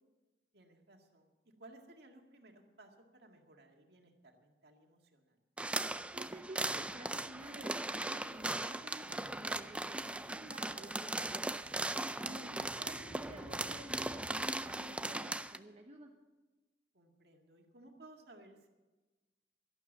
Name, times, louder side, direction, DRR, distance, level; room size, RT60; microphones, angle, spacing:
voice 1, 0.5-1.3 1.6-5.4 12.2-12.6 16.9-18.7, right 2 dB, 65° right, 2 dB, 2.0 m, -59 dB
sound 1, 5.6-15.6, right 2 dB, 5° right, 0.4 m, -38 dB
voice 2, 6.1-11.4 12.1-16.1, right 1 dB, 40° right, 2 dB, 1.0 m, -52 dB
sound 2, 8.5-14.8, left 1 dB, 55° left, 2.2 m, -56 dB
12.0 x 12.0 x 7.3 m, 1.2 s
head